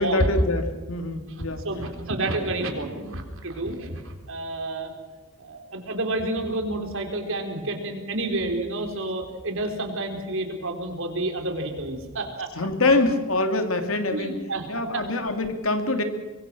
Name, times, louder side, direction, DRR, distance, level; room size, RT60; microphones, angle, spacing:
voice 1, 0.0-1.7 12.5-14.4 14.7-16.0, left 2 dB, 70° left, 7 dB, 2.6 m, -24 dB
voice 2, 1.6-4.9 5.4-12.5 14.1-14.6 14.9-15.1, right 2 dB, 65° right, 4 dB, 4.1 m, -29 dB
24.5 x 23.0 x 6.2 m, 1.3 s
head